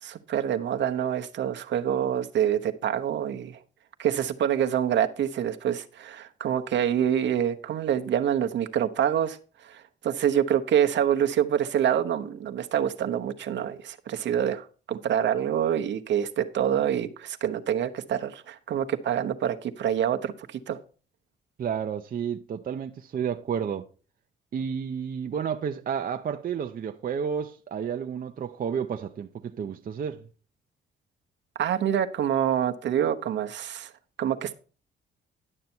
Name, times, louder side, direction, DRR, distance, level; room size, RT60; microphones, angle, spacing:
voice 1, 0.0-3.6 4.0-9.4 9.6-20.8 31.6-33.9 34.2-34.5, right 9 dB, 65° right, 0.9 m, -26 dB
voice 2, 21.6-23.9 24.5-30.2, right 7 dB, 45° right, 0.7 m, -31 dB
11.0 x 6.7 x 4.4 m
cardioid pair, 90°, 20 cm